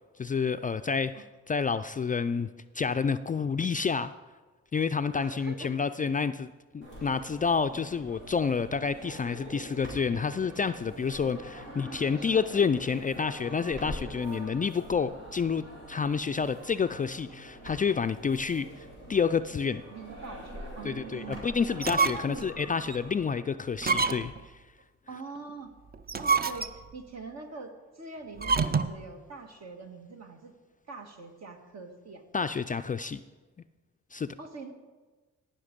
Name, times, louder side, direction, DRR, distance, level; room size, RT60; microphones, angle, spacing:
voice 1, 0.2-4.1 4.7-19.8 20.8-24.3 32.3-33.2 34.1-34.3, left 5 dB, 30° left, 11 dB, 0.3 m, -29 dB
voice 2, 5.2-5.7 7.0-7.1 11.4-12.6 19.9-21.4 22.0-22.5 25.1-25.7 26.2-30.5 30.9-32.2 34.4-34.7, right 4 dB, 60° right, 4 dB, 1.7 m, -44 dB
sound 1, 6.8-23.4, equal, 85° right, 4.0 m, -45 dB
sound 2, 21.7-22.4 22.9-23.0 23.8-24.5 25.9-27.0 28.4-29.0, right 4 dB, 30° right, 0.6 m, -27 dB
17.5 x 5.9 x 5.2 m, 1.3 s
cardioid pair, 70°, 30 cm